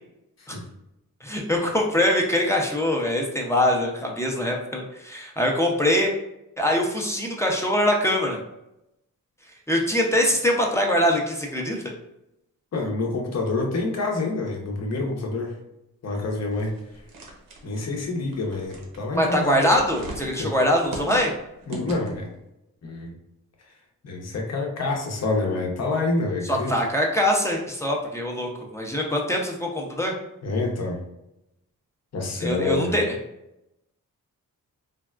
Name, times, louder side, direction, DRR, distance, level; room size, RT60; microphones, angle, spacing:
voice 1, 1.2-6.1 6.6-8.4 9.7-11.8 19.1-21.3 26.5-30.1 32.4-33.1, left 1 dB, 10° left, -1 dB, 0.5 m, -23 dB
voice 2, 12.7-15.5 16.0-16.7 17.6-19.7 20.3-20.5 21.7-22.3 22.8-23.1 24.0-26.7 30.4-31.0 32.1-33.0, left 3 dB, 50° left, 1 dB, 0.7 m, -27 dB
sound 1, 16.5-22.3, right 2 dB, 85° right, 0.8 m, -40 dB
3.4 x 2.2 x 2.3 m, 0.87 s
cardioid pair, 90°, 35 cm